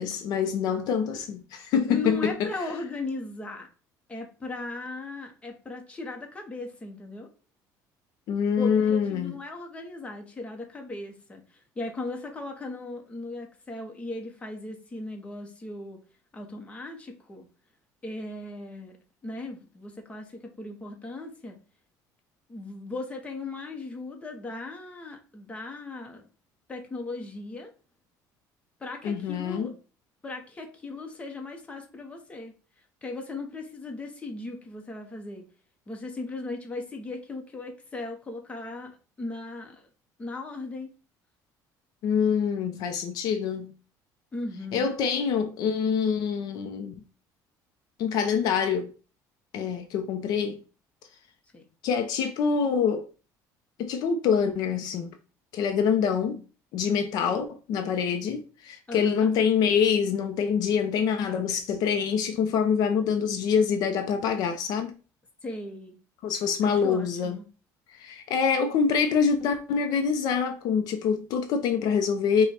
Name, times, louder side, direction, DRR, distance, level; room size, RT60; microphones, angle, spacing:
voice 1, 0.0-2.5 8.3-9.3 29.0-29.7 42.0-43.7 44.7-47.0 48.0-48.9 49.5-50.6 51.8-53.1 53.8-55.1 55.5-56.4 56.7-64.9 66.2-67.4 67.9-72.5, left 6 dB, 60° left, 0.6 m, -25 dB
voice 2, 1.9-3.7 4.1-7.3 8.6-16.0 16.3-17.5 18.0-18.9 19.2-21.6 22.5-26.2 26.7-27.7 28.8-29.7 30.2-32.5 33.0-35.4 35.9-39.9 40.2-40.9 44.3-44.9 51.5-51.6 58.9-59.3 65.4-66.0 66.6-67.4, left 2 dB, 15° left, 0.9 m, -37 dB
5.0 x 2.3 x 4.2 m
cardioid pair, 150°, 8 cm